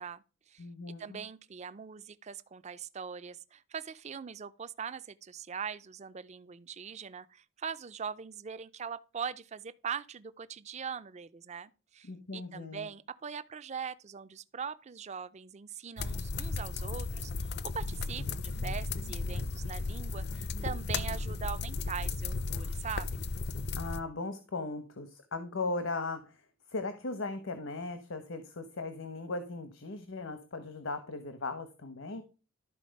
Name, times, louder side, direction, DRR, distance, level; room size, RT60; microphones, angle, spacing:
voice 1, 0.0-0.6 1.0-23.2, right 6 dB, 35° right, 0.4 m, -41 dB
voice 2, 0.6-1.2 12.0-12.9 23.8-26.4 26.7-32.2, left 3 dB, 80° left, 1.0 m, -38 dB
sound 1, 16.0-24.0, left 3 dB, 55° left, 0.6 m, -35 dB
12.5 x 4.1 x 5.2 m
head